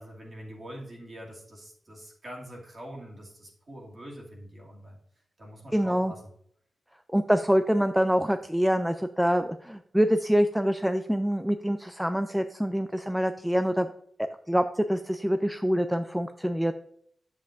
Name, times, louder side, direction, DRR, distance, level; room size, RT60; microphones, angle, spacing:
voice 1, 0.0-5.0 5.4-6.2, equal, 35° right, -2 dB, 2.4 m, -44 dB
voice 2, 5.7-6.1 7.1-13.9 14.2-16.7, equal, 5° right, 8 dB, 0.3 m, -25 dB
10.0 x 7.3 x 2.6 m, 0.66 s
wide cardioid pair, 160°, 0 cm